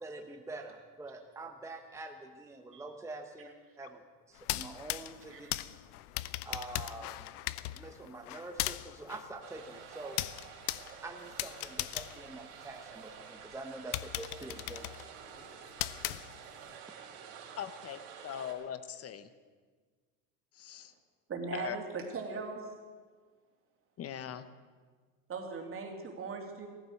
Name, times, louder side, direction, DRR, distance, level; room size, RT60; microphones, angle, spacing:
voice 1, 0.0-3.5 3.8-4.0 4.3-5.5 6.4-7.4 7.7-10.2 11.0-14.9 15.2-15.3 16.9-17.0, right 2 dB, 5° right, 3 dB, 1.0 m, -45 dB
sound 1, 4.4-13.1 13.5-13.6 13.9-16.7, left 17 dB, 75° left, 0.7 m, -39 dB
sound 2, 9.4-18.5, right 8 dB, 70° right, 4.3 m, -50 dB
voice 2, 17.6-19.3 20.6-20.9 21.5-21.8 24.0-24.5, left 9 dB, 30° left, 13 dB, 1.0 m, -40 dB
voice 3, 21.3-22.6 25.3-26.7, right 4 dB, 30° right, 2 dB, 2.9 m, -39 dB
15.5 x 14.0 x 6.6 m, 1.5 s
supercardioid pair, 115°, 46 cm